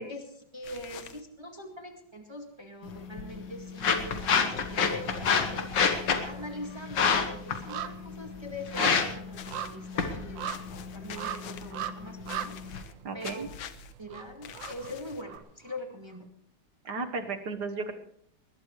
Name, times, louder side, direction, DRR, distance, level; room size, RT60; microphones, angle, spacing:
voice 1, 0.0-10.5 10.9-13.4 14.0-16.3, left 1 dB, 15° right, 2 dB, 1.9 m, -43 dB
sound 1, 0.6-1.2 8.7-9.8 10.4-11.7 12.2-12.9 13.2-13.9 14.4-15.4, left 9 dB, 85° left, 1.7 m, -45 dB
sound 2, 2.8-12.8, left 6 dB, 70° left, 2.2 m, -30 dB
sound 3, 4.7-5.5 5.8-15.8 16.1-16.2, right 9 dB, 75° right, 1.6 m, -41 dB
voice 2, 13.0-13.5 16.9-17.9, right 4 dB, 60° right, 6 dB, 1.9 m, -34 dB
21.0 x 20.0 x 3.2 m, 0.67 s
omnidirectional pair, 2.1 m